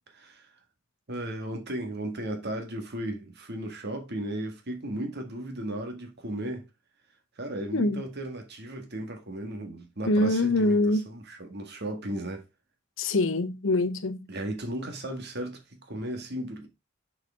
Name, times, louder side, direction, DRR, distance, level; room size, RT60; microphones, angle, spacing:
voice 1, 0.1-0.5 1.1-6.7 7.4-10.8 11.1-12.4 14.3-16.7, right 1 dB, 55° right, 1.9 m, -35 dB
voice 2, 10.1-11.1 13.0-14.3, left 2 dB, 70° left, 0.9 m, -24 dB
7.8 x 5.1 x 3.6 m
head